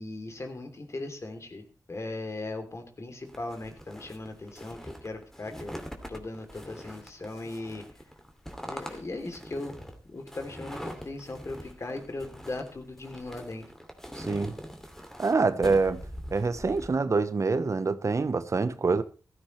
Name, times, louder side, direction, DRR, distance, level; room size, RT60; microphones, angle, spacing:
voice 1, 0.0-5.7 6.1-7.8 8.6-9.8 10.1-13.6, left 2 dB, 45° left, 3.1 m, -38 dB
sound 1, 3.3-16.9, equal, 5° left, 2.6 m, -43 dB
voice 2, 14.2-14.5 15.2-16.1 16.3-19.0, right 4 dB, 50° right, 1.0 m, -26 dB
15.5 x 14.0 x 3.3 m
cardioid pair, 60°, 7 cm